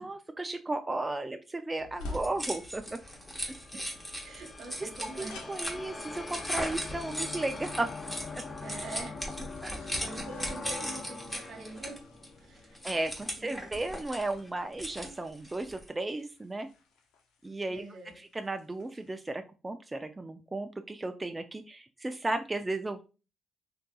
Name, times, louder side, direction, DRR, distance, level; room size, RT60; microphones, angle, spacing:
voice 1, 0.0-2.8 4.8-4.9 5.2-7.9 8.3-8.4 9.6-9.8 12.8-16.7 17.4-17.8 18.3-23.0, right 2 dB, 20° right, 7 dB, 0.3 m, -34 dB
sound 1, 1.8-19.1, left 2 dB, 85° left, 0.5 m, -52 dB
sound 2, 2.0-15.9, equal, 10° left, 1.1 m, -39 dB
sound 3, 2.8-13.1, left 3 dB, 30° left, 0.7 m, -43 dB
voice 2, 3.7-5.4 8.6-12.1 12.4-12.8 13.4-13.8 17.7-18.2, right 3 dB, 75° right, 2 dB, 1.1 m, -45 dB
3.5 x 2.6 x 2.3 m, 0.33 s
supercardioid pair, 55°, 0 cm